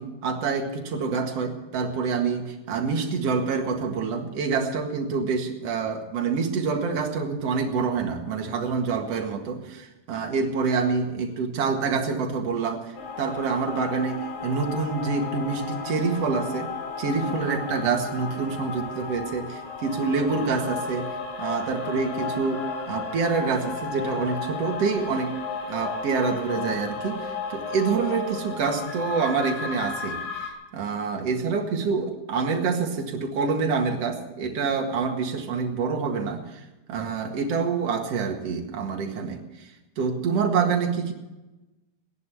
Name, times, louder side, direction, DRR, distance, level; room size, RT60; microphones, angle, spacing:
voice 1, 0.0-16.7 17.0-25.3 25.7-39.7 40.0-41.1, right 5 dB, 50° right, 3 dB, 2.4 m, -27 dB
sound 1, 13.0-30.5, left 5 dB, 80° left, 4.5 m, -34 dB
18.0 x 11.0 x 7.0 m, 1.1 s
omnidirectional pair, 4.5 m